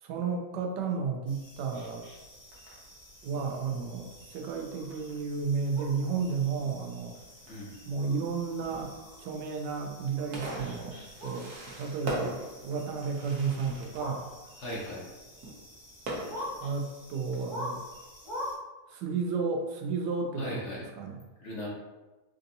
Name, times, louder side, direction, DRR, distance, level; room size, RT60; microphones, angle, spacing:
voice 1, 0.0-2.1 3.2-7.2 7.9-8.9 9.2-14.3 16.6-17.8 18.9-21.2, right 5 dB, 90° right, 2 dB, 1.2 m, -32 dB
sound 1, 1.3-18.6, left 1 dB, 30° left, 0.6 m, -46 dB
Fireworks, 1.7-16.7, right 1 dB, 60° right, 1.0 m, -44 dB
voice 2, 7.5-7.8 14.6-15.1 20.4-20.8 21.4-21.7, left 1 dB, 60° left, -5 dB, 0.8 m, -37 dB
3.5 x 2.6 x 2.6 m, 1.1 s
omnidirectional pair, 1.8 m